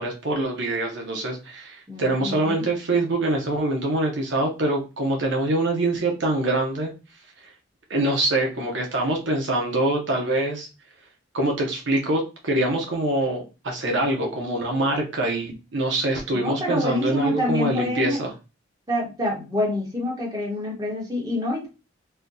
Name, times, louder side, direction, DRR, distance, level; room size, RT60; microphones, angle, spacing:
voice 1, 0.0-6.9 7.9-10.7 11.3-18.3, right 2 dB, 70° right, 1 dB, 0.7 m, -24 dB
voice 2, 1.9-2.7 16.3-18.2 18.9-21.7, left 1 dB, 20° right, -2 dB, 1.1 m, -27 dB
4.3 x 2.2 x 2.6 m, 0.30 s
head